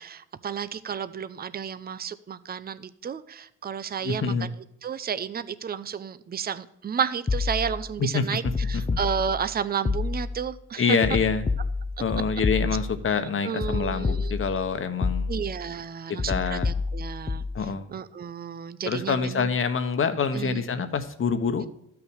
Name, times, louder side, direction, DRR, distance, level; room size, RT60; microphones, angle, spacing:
voice 1, 0.0-4.5 4.8-8.4 8.7-11.0 13.4-14.4 15.3-17.4 17.9-19.5 20.3-20.6, right 7 dB, 30° right, 14 dB, 0.7 m, -32 dB
voice 2, 4.0-4.5 8.0-8.4 8.7-9.0 10.8-11.5 12.0-15.3 16.1-16.7 17.5-17.9 18.8-21.7, left 5 dB, 45° left, 9 dB, 1.3 m, -26 dB
sound 1, 7.3-7.9 8.4-9.5 9.9-10.5 11.0-13.1 13.6-14.7 15.0-15.6 16.2-17.6, left 4 dB, 20° left, 0.7 m, -29 dB
12.5 x 6.1 x 6.4 m, 0.77 s
cardioid pair, 90°, 30 cm